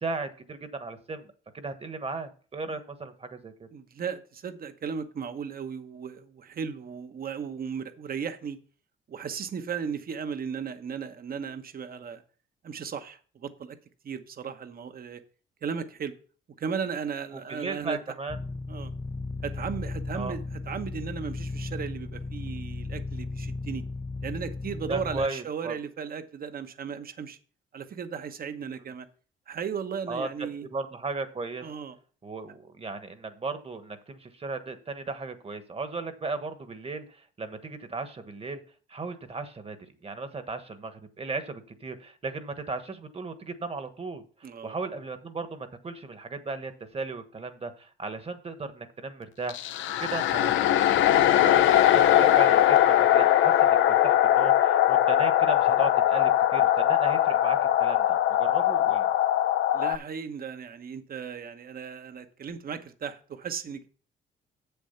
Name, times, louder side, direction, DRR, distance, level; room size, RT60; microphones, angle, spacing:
voice 1, 0.0-1.3 1.5-3.7 17.3-18.4 20.1-20.4 24.9-25.7 30.1-31.6 32.2-38.6 38.9-39.8 40.0-49.7 50.0-50.8 51.1-59.1, right 3 dB, 30° right, 1.3 m, -36 dB
voice 2, 3.7-8.6 9.1-12.2 12.6-13.8 14.0-15.2 15.6-16.1 16.6-18.0 18.7-18.9 19.4-23.8 24.2-27.4 27.7-29.1 29.5-30.7 31.6-32.0 44.4-44.8 59.7-63.9, right 6 dB, 50° right, 1.0 m, -36 dB
sound 1, 18.3-25.3, left 3 dB, 10° left, 0.4 m, -35 dB
sound 2, 49.5-60.0, left 12 dB, 75° left, 0.5 m, -21 dB
7.6 x 7.0 x 5.7 m
cardioid pair, 90°, 20 cm